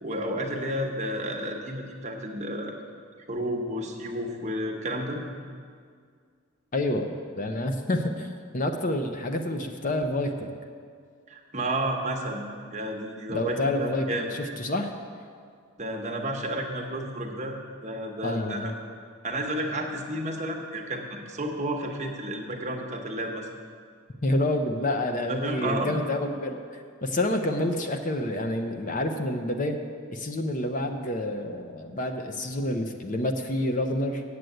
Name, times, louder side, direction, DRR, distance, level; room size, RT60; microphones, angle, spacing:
voice 1, 0.0-2.8 3.3-5.2 11.3-12.4 12.7-14.3 15.8-17.5 17.8-18.7 19.2-23.5 25.3-25.9, right 1 dB, 30° right, 1 dB, 1.0 m, -31 dB
voice 2, 6.7-10.5 13.3-14.9 18.2-18.8 24.2-29.8 30.1-34.2, left 1 dB, 35° left, 5 dB, 0.6 m, -28 dB
8.3 x 7.8 x 7.8 m, 2.1 s
head